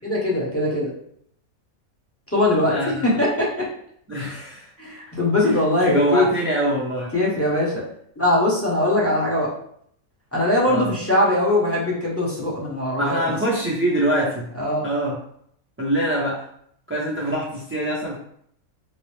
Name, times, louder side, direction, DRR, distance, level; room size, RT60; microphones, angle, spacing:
voice 1, 0.0-0.9 2.3-2.7 3.0-3.7 4.8-6.3 7.1-7.8 8.2-9.5 10.3-13.4 14.6-14.9, left 1 dB, 15° left, -6 dB, 0.8 m, -21 dB
voice 2, 2.7-3.1 4.1-4.7 5.4-7.1 10.7-10.8 13.0-14.5 14.8-15.2 15.8-16.4 16.9-18.2, right 1 dB, 20° right, -5 dB, 0.3 m, -24 dB
4.7 x 2.0 x 3.1 m, 0.67 s
omnidirectional pair, 1.4 m